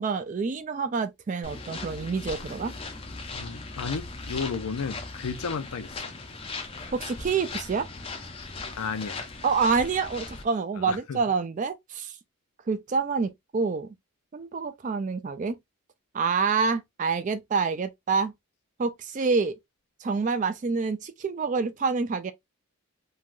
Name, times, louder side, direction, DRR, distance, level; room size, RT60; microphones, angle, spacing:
voice 1, 0.0-2.7 6.9-7.9 9.4-12.1 12.7-13.9 14.3-15.6 16.1-18.3 18.8-19.5 20.0-22.3, right 5 dB, 35° right, 0.3 m, -27 dB
sound 1, 1.4-10.4, left 3 dB, 25° left, 0.5 m, -38 dB
voice 2, 3.3-5.9 8.8-9.3 10.8-11.2, left 5 dB, 80° left, 0.5 m, -33 dB
3.2 x 2.3 x 2.5 m
head